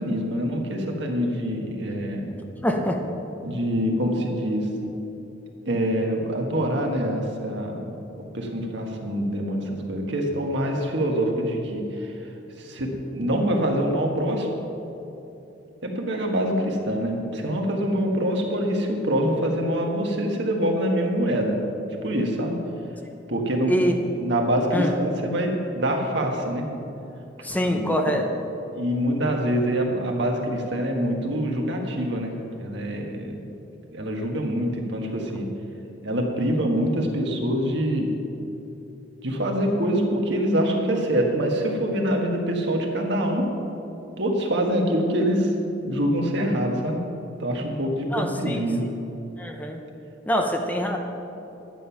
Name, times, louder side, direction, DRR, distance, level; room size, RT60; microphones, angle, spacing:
voice 1, 0.0-2.3 3.4-4.7 5.6-12.2 12.6-14.5 15.8-21.6 22.0-22.6 23.3-23.9 24.1-26.6 27.7-28.1 28.7-33.5 33.9-35.5 36.0-38.1 39.2-43.5 44.2-45.5 45.8-47.0 47.4-48.8, equal, 65° right, 1 dB, 1.6 m, -25 dB
voice 2, 2.6-3.0 23.7-23.9 24.7-24.9 27.4-28.3 48.1-48.6 49.4-49.8 50.3-51.0, equal, 10° left, 3 dB, 0.7 m, -24 dB
11.0 x 9.1 x 5.8 m, 2.9 s
head